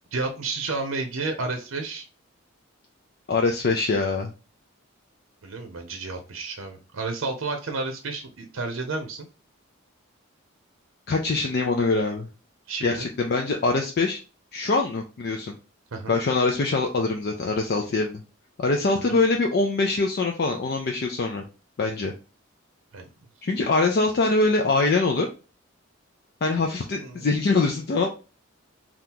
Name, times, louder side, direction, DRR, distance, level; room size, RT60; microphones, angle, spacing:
voice 1, 0.1-2.1 5.4-9.3 12.7-13.1 15.9-16.2 19.0-19.2 22.9-23.1 26.9-27.4, right 3 dB, 85° right, 5 dB, 0.6 m, -31 dB
voice 2, 3.3-4.3 11.1-12.3 12.8-14.2 14.5-15.5 16.1-18.2 18.6-21.4 21.8-22.1 23.4-25.3 26.4-28.1, left 3 dB, 50° left, 2 dB, 0.4 m, -23 dB
2.8 x 2.4 x 3.6 m, 0.32 s
head